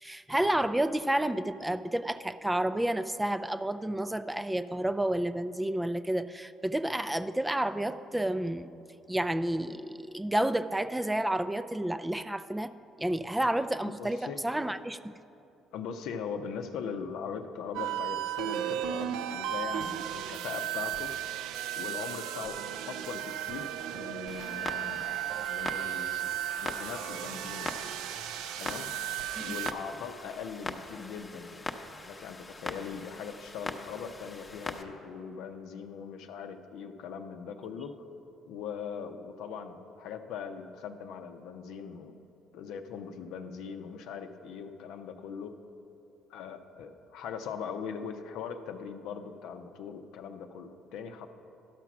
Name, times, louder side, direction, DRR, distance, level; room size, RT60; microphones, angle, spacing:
voice 1, 0.0-8.7 9.1-12.7 13.0-15.2 29.4-29.6, right 1 dB, 10° right, 11 dB, 0.4 m, -30 dB
voice 2, 13.8-14.4 15.7-21.1 21.8-25.2 25.4-27.8 28.6-28.9 29.4-31.6 32.0-38.0 38.5-42.1 42.5-45.6 46.3-51.3, left 6 dB, 75° left, 6 dB, 0.6 m, -40 dB
sound 1, 17.7-29.7, right 11 dB, 75° right, 0.4 m, -35 dB
Clock, 24.3-34.8, left 2 dB, 25° left, 0.8 m, -42 dB
12.0 x 5.9 x 6.0 m, 2.7 s
hypercardioid pair, 60°, 0 cm